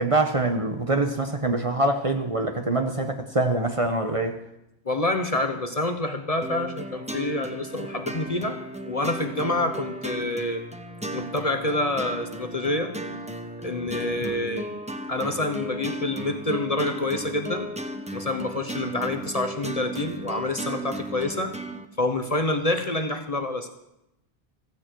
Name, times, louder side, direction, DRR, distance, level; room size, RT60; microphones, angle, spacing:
voice 1, 0.0-4.4, right 2 dB, 30° right, 1.1 m, -24 dB
voice 2, 4.8-8.6 8.8-10.6 11.1-12.9 13.6-14.7 15.1-17.7 18.1-21.5 22.0-23.7, left 2 dB, 35° left, 1.1 m, -27 dB
sound 1, 6.4-21.9, right 1 dB, 5° right, 0.9 m, -35 dB
16.0 x 15.0 x 4.6 m
omnidirectional pair, 1.1 m